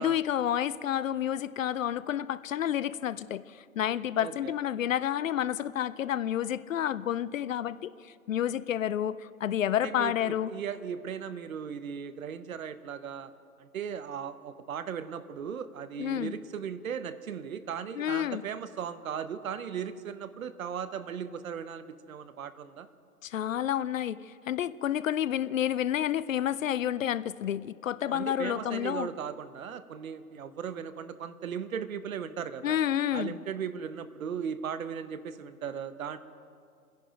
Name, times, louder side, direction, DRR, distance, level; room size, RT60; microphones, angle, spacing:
voice 1, 0.0-7.9 8.3-10.5 16.0-16.3 18.0-18.4 23.2-29.1 32.6-33.3, left 10 dB, 60° left, 17 dB, 0.6 m, -30 dB
voice 2, 4.2-4.5 9.8-13.3 13.6-22.9 28.1-32.8 33.1-36.2, right 7 dB, 65° right, 13 dB, 1.0 m, -37 dB
27.0 x 10.5 x 5.1 m, 2.3 s
hypercardioid pair, 145°, 45 cm